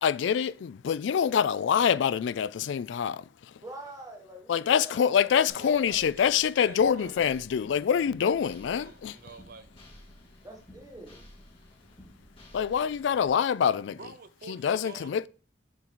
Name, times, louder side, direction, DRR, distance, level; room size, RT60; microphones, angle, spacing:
voice 1, 0.0-3.2 4.5-9.1 12.5-14.0 14.5-15.3, left 7 dB, 80° left, 0.3 m, -25 dB
voice 2, 3.6-5.8 10.4-11.2, right 1 dB, 20° right, 1.5 m, -46 dB
sound 1, 5.5-13.3, left 1 dB, 30° left, 2.3 m, -53 dB
voice 3, 5.6-7.3 8.2-9.7 14.0-15.3, right 4 dB, 55° right, 0.6 m, -47 dB
7.3 x 3.9 x 4.5 m
head